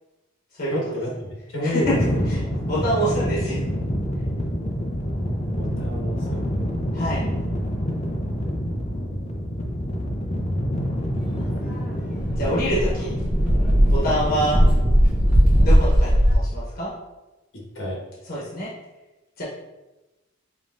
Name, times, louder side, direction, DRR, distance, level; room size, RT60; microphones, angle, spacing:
voice 1, 0.7-1.1 1.5-2.2 5.5-6.4 17.5-18.0, left 1 dB, 75° left, -3 dB, 1.4 m, -29 dB
voice 2, 1.6-1.9 2.3-3.6 6.9-7.3 12.4-13.1 13.9-14.6 15.6-16.9 18.3-18.7 19.4-19.5, equal, 50° left, -7 dB, 1.1 m, -26 dB
sound 1, 1.8-15.8, equal, 35° left, 0.5 m, -27 dB
Dog, 11.7-11.8 12.2-16.3, equal, 5° right, 0.8 m, -18 dB
5.1 x 3.3 x 2.6 m, 1.0 s
head